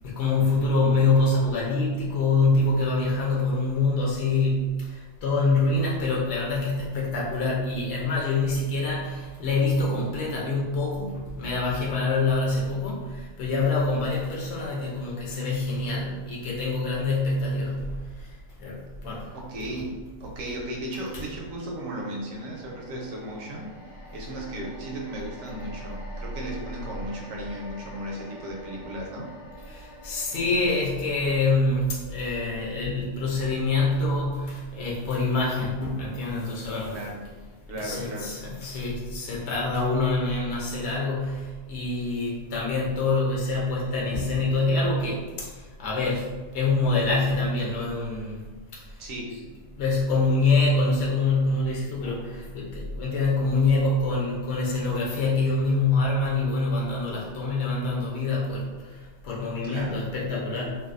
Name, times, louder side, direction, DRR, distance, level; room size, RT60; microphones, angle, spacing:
voice 1, 0.0-19.4 29.7-37.0 37.7-48.4 48.7-49.0 49.7-60.8, left 3 dB, 65° left, -4 dB, 0.8 m, -25 dB
voice 2, 19.3-23.7 24.1-29.3 36.9-37.2 37.7-38.3 49.0-49.5 59.6-60.1, right 1 dB, 85° right, -1 dB, 1.0 m, -35 dB
sound 1, 21.4-35.8 36.1-36.3, left 1 dB, 25° left, 0.5 m, -48 dB
2.6 x 2.2 x 2.4 m, 1.3 s
omnidirectional pair, 1.4 m